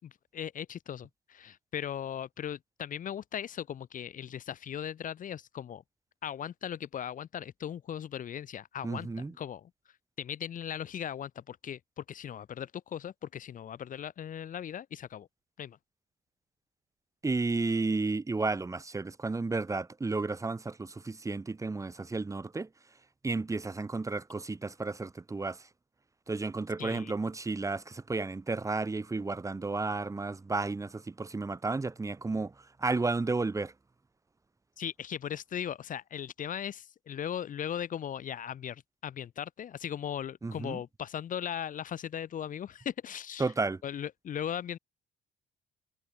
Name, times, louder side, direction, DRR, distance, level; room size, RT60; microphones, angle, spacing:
voice 1, 0.0-5.8 6.2-9.7 10.2-15.3 15.6-15.8 26.8-27.1 34.8-43.5 43.8-44.8, left 9 dB, 50° left, 5.7 m, -38 dB
voice 2, 8.8-9.3 17.2-22.7 23.2-25.6 26.3-32.5 32.8-33.7 40.4-40.8 43.4-43.8, right 3 dB, 20° right, 5.9 m, -32 dB
cardioid pair, 110°, 17 cm